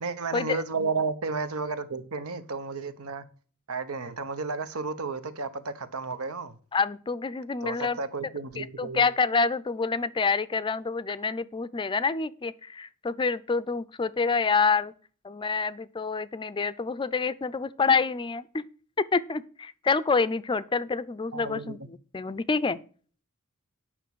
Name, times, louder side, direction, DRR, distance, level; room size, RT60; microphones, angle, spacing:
voice 1, 0.0-3.2 3.7-6.5 7.6-9.0 21.3-21.8, right 4 dB, 85° right, 1.1 m, -32 dB
voice 2, 6.7-8.0 8.6-14.9 15.2-18.6 19.1-22.8, left 4 dB, 25° left, 0.4 m, -27 dB
9.3 x 5.8 x 6.1 m
head